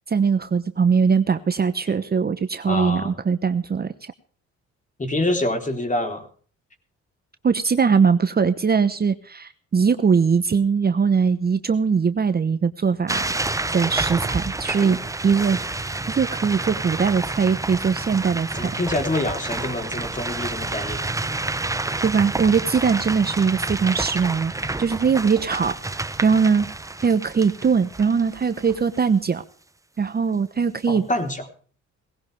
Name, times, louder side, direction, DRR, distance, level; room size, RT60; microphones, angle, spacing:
voice 1, 0.1-4.1 7.4-13.3 13.7-18.8 22.0-25.8 26.2-26.7 27.0-29.4 30.0-31.1, right 5 dB, 30° right, 10 dB, 1.1 m, -21 dB
voice 2, 2.7-3.1 5.0-6.3 14.8-15.0 18.6-21.0 30.9-31.4, left 1 dB, 25° left, 6 dB, 3.7 m, -26 dB
sound 1, 13.1-29.0, right 2 dB, 10° right, 0.8 m, -29 dB
19.0 x 17.0 x 3.4 m, 0.43 s
cardioid pair, 90°, 30 cm